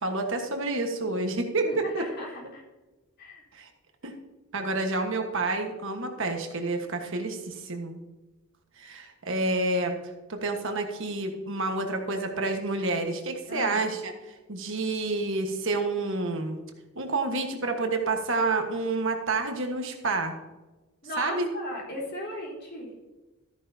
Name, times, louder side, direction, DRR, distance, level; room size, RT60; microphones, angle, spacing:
voice 1, 0.0-2.1 3.5-3.7 4.0-4.1 4.5-8.0 8.8-10.0 10.3-16.6 16.9-20.3 21.2-21.5, right 3 dB, 60° right, 4 dB, 1.4 m, -29 dB
voice 2, 1.6-2.6 3.2-3.4 13.5-13.8 21.0-22.9, left 1 dB, 45° left, -4 dB, 3.9 m, -37 dB
13.5 x 9.8 x 2.8 m, 1.1 s
head